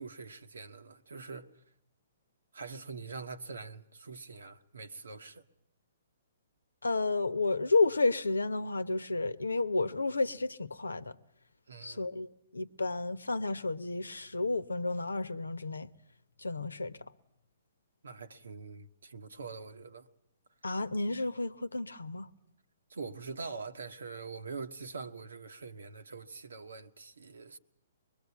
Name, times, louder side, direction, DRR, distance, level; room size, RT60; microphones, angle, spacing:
voice 1, 0.0-1.6 2.5-5.4 11.7-12.1 18.0-20.1 22.9-27.6, right 4 dB, 75° right, 1.3 m, -44 dB
voice 2, 6.8-11.1 11.8-15.9 16.4-17.0 20.6-22.3, left 3 dB, 85° left, 0.9 m, -31 dB
23.5 x 21.0 x 8.4 m
figure-of-eight pair, 125°, 0 cm